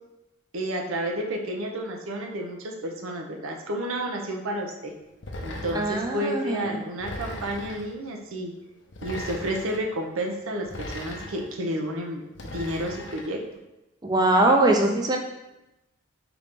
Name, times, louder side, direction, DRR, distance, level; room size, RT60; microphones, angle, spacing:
voice 1, 0.5-4.9 5.4-8.5 9.0-12.2 12.5-13.4, right 1 dB, 90° right, 1 dB, 0.7 m, -31 dB
sound 1, 5.2-6.1 7.0-7.9 8.9-9.8 10.7-11.5 12.3-13.3, left 1 dB, 60° left, 0.6 m, -37 dB
voice 2, 5.7-6.8 14.0-15.2, right 2 dB, 20° right, 2 dB, 0.4 m, -22 dB
3.8 x 2.9 x 3.5 m, 0.95 s
head